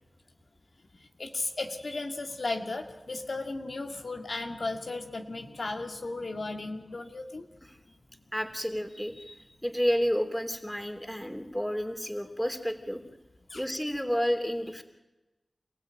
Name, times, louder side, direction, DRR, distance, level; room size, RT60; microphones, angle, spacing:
voice 1, 0.9-7.5 13.5-13.6, left 2 dB, 70° left, 4 dB, 2.1 m, -35 dB
voice 2, 8.3-9.4 9.6-13.0 13.5-14.8, equal, 5° left, 6 dB, 3.3 m, -30 dB
29.0 x 16.0 x 9.1 m, 1.0 s
cardioid pair, 45°, 0 cm